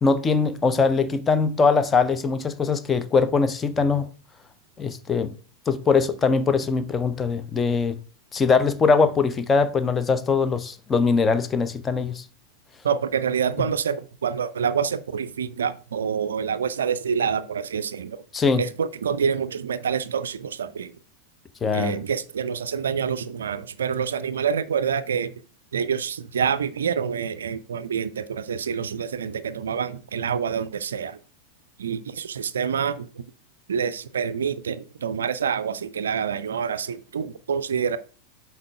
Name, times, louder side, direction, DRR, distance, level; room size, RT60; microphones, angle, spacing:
voice 1, 0.0-4.1 4.8-5.3 5.7-8.0 8.3-12.2 18.3-18.6 21.6-22.0, left 4 dB, 20° left, 0.6 m, -21 dB
voice 2, 12.8-18.2 18.6-20.9 21.7-25.3 25.7-31.2 31.8-33.2 33.7-38.0, right 7 dB, 65° right, 0.4 m, -27 dB
7.4 x 4.7 x 3.4 m
figure-of-eight pair, 90°, 0 cm